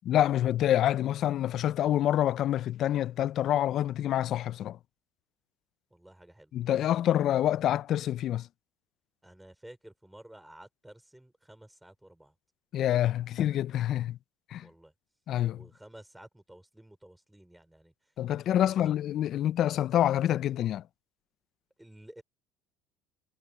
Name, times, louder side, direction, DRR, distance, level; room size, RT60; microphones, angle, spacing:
voice 1, 0.1-4.8 6.5-8.5 12.7-14.2 14.5-14.7 15.3-15.6 18.2-20.8, left 12 dB, 40° left, 0.3 m, -27 dB
voice 2, 5.9-6.5 9.2-12.3 14.6-14.9 15.5-17.9 18.3-19.0 21.8-22.2, right 1 dB, 5° right, 4.4 m, -52 dB
cardioid pair, 165°, 0 cm